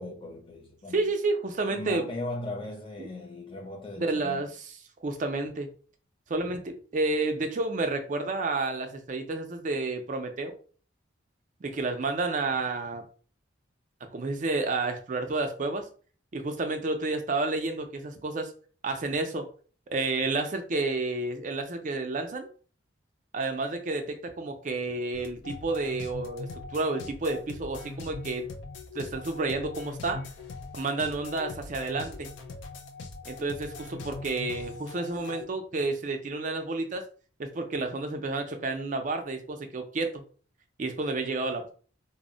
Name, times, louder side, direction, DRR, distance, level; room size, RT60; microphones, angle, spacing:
voice 1, 0.0-1.0 1.7-4.5, left 2 dB, 25° left, 0.6 m, -38 dB
voice 2, 0.9-2.0 3.0-3.1 4.0-5.7 6.3-10.5 11.6-13.0 14.0-15.9 16.3-18.5 18.8-19.5 19.9-22.5 23.3-28.5 28.9-30.2 30.7-32.3 33.3-37.0 37.4-40.2 40.8-41.7, right 3 dB, 40° right, 0.4 m, -30 dB
sound 1, 25.1-35.4, left 3 dB, 60° left, 0.4 m, -41 dB
2.0 x 2.0 x 3.7 m
head